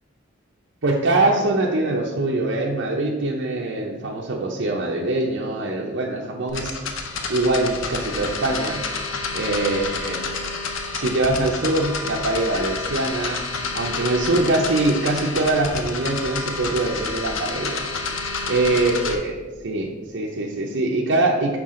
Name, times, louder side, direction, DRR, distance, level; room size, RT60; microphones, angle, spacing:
voice 1, 0.8-6.7 7.3-8.8 9.3-10.2 10.9-13.4 13.7-17.8 18.5-19.3 19.6-21.6, right 2 dB, 65° right, -3 dB, 0.6 m, -23 dB
sound 1, 6.5-19.2, left 4 dB, 80° left, 0.7 m, -29 dB
6.0 x 4.7 x 3.7 m, 1.3 s
head